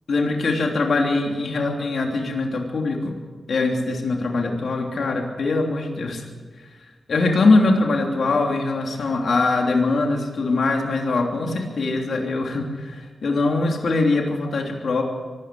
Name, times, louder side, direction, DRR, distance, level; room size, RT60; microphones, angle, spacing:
voice 1, 0.1-3.1 3.5-6.2 7.1-15.0, left 3 dB, 70° left, 1 dB, 3.1 m, -22 dB
23.5 x 13.0 x 8.4 m, 1.4 s
wide cardioid pair, 95°, 0 cm